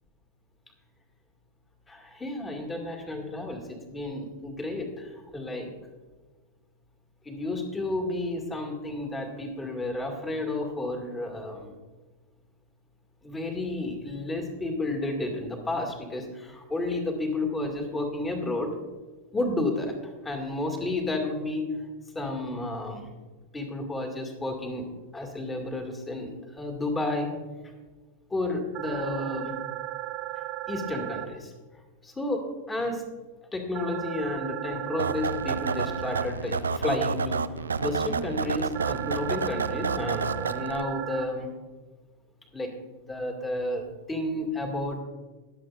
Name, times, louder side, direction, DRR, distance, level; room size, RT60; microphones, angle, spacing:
voice 1, 1.9-5.7 7.2-11.7 13.2-18.7 19.3-21.7 22.1-23.1 23.5-24.9 25.1-27.3 28.3-29.5 30.7-31.5 32.0-33.0 33.5-41.5 42.5-42.7 43.0-45.0, left 2 dB, 15° left, 3 dB, 2.4 m, -31 dB
sound 1, 28.7-31.2 33.7-36.2 38.7-41.2, right 16 dB, 40° right, 1.2 m, -35 dB
sound 2, 35.0-40.8, right 5 dB, 80° right, 0.4 m, -30 dB
22.0 x 8.0 x 2.6 m, 1.3 s
figure-of-eight pair, 90°, 0 cm